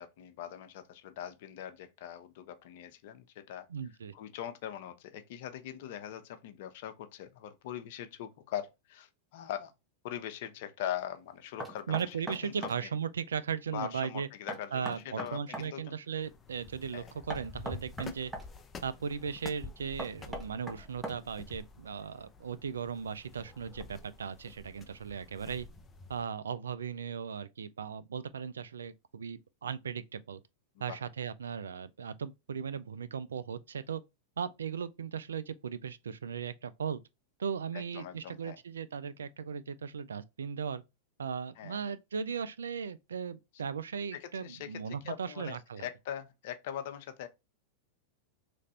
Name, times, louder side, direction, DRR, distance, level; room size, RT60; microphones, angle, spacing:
voice 1, 0.0-3.7 4.1-9.7 10.0-12.1 12.4-12.9 13.7-16.0 16.9-17.1 30.8-31.0 37.7-38.6 41.6-41.8 44.2-44.7 45.0-47.3, left 10 dB, 60° left, 0.7 m, -41 dB
voice 2, 3.7-4.1 11.9-14.3 14.7-18.3 18.8-25.7 26.1-30.4 30.8-34.0 34.4-37.0 37.4-40.8 41.2-45.9, right 7 dB, 85° right, 0.4 m, -37 dB
Knock, 11.6-12.8 14.5-15.7 17.3-18.5 20.0-21.4, right 2 dB, 10° right, 0.9 m, -40 dB
sound 1, 16.2-26.2, left 3 dB, 20° left, 0.6 m, -49 dB
3.2 x 2.5 x 4.1 m
hypercardioid pair, 105°, 0 cm